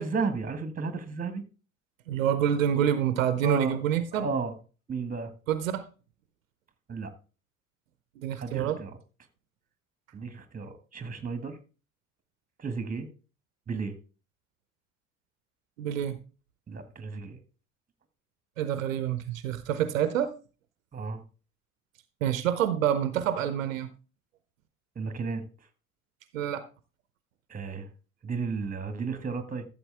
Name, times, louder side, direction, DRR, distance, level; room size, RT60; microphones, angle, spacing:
voice 1, 0.0-1.4 3.4-3.8 4.1-4.5 4.9-5.3 6.9-7.1 8.4-9.0 10.1-11.6 12.6-13.1 13.7-14.0 16.7-17.4 20.9-21.2 24.9-25.4 27.5-27.9 28.2-29.6, right 4 dB, 20° right, 10 dB, 1.7 m, -33 dB
voice 2, 2.1-4.3 5.5-5.9 8.2-8.8 15.8-16.2 18.6-20.3 22.2-23.9 26.3-26.6, right 9 dB, 70° right, 13 dB, 0.8 m, -27 dB
13.0 x 7.3 x 3.4 m, 0.34 s
figure-of-eight pair, 60°, 40 cm